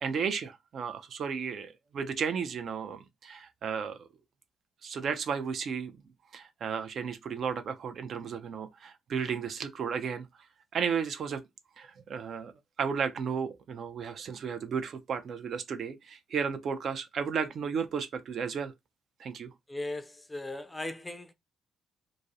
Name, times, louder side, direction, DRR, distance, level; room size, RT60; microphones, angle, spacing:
voice 1, 0.0-4.1 4.8-5.9 6.3-10.3 10.7-11.4 11.8-12.5 12.8-18.7 19.2-19.5, right 6 dB, 60° right, 0.4 m, -34 dB
voice 2, 19.7-21.3, left 2 dB, 15° left, 0.4 m, -38 dB
2.4 x 2.0 x 2.6 m
cardioid pair, 85°, 0 cm